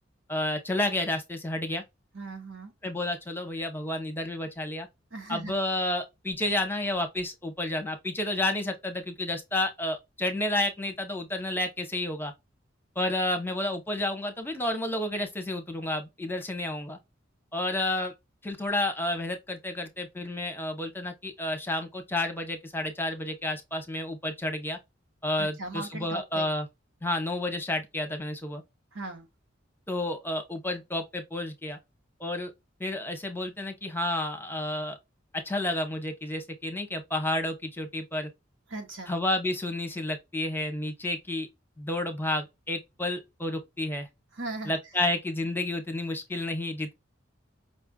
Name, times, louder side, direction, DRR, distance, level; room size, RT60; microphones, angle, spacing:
voice 1, 0.3-1.8 2.8-4.9 5.3-12.3 13.0-17.0 17.5-18.1 18.4-24.8 25.2-26.7 27.0-28.6 29.9-31.8 32.2-32.5 32.8-35.0 35.3-38.3 39.1-41.5 41.8-44.1 44.7-46.9, left 1 dB, 10° left, 0.7 m, -31 dB
voice 2, 2.1-2.7 5.1-5.5 25.4-26.5 28.9-29.3 38.7-39.1 44.3-44.8, right 2 dB, 80° right, 1.4 m, -38 dB
5.3 x 2.4 x 2.2 m
head